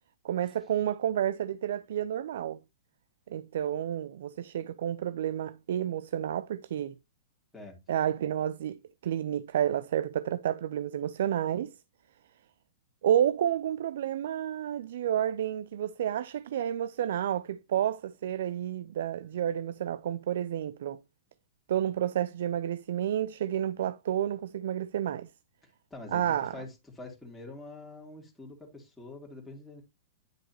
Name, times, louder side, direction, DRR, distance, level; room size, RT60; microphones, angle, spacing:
voice 1, 0.2-2.6 3.3-7.0 7.9-11.7 13.0-21.0 21.7-25.3 26.1-26.6, right 10 dB, 65° right, 0.4 m, -30 dB
voice 2, 25.6-29.8, left 2 dB, 5° left, 2.7 m, -46 dB
10.0 x 6.0 x 2.9 m
hypercardioid pair, 105°, 0 cm